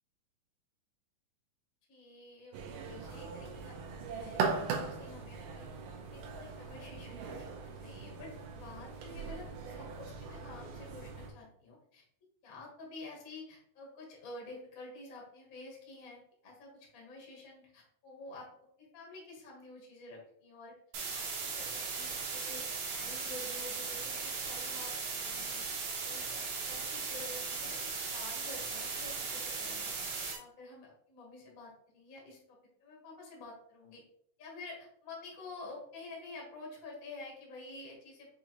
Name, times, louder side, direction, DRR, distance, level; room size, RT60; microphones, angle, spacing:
voice 1, 1.9-5.7 6.0-12.0 12.4-20.8 21.1-29.9 30.3-34.0 34.4-38.3, left 3 dB, 85° left, -2 dB, 0.7 m, -50 dB
sound 1, 2.5-11.3, right 5 dB, 90° right, 2.3 m, -40 dB
sound 2, 20.9-30.4, right 5 dB, 70° right, 1.9 m, -38 dB
6.2 x 2.6 x 2.9 m, 0.66 s
omnidirectional pair, 3.8 m